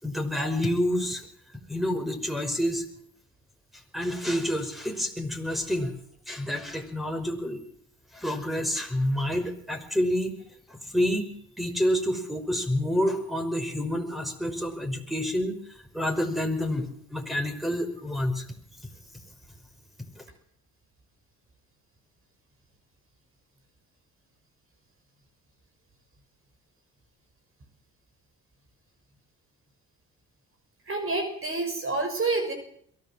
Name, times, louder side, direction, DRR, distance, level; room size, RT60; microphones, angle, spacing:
voice 1, 0.0-1.3 1.7-2.8 3.9-5.9 6.3-7.6 8.1-10.4 10.7-15.6 15.9-18.4 20.2-20.3, equal, ahead, 6 dB, 5.4 m, -28 dB
voice 2, 30.9-32.5, right 3 dB, 40° right, 6 dB, 6.0 m, -28 dB
22.5 x 15.5 x 7.6 m, 0.68 s
supercardioid pair, 65°, 33 cm